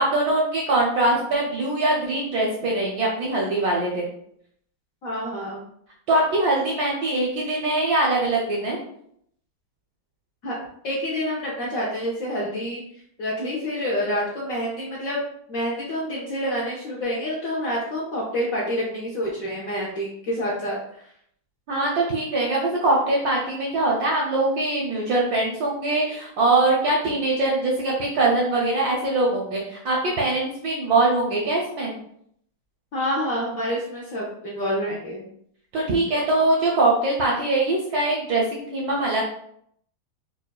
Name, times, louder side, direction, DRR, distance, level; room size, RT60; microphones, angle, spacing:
voice 1, 0.0-4.1 6.1-8.8 21.7-32.0 35.7-39.2, right 2 dB, 70° right, -3 dB, 0.9 m, -22 dB
voice 2, 5.0-5.6 10.4-10.6 10.8-12.8 13.2-15.2 15.5-21.0 32.9-35.3, equal, 70° left, -4 dB, 0.8 m, -28 dB
4.5 x 2.3 x 2.2 m, 0.70 s
omnidirectional pair, 2.2 m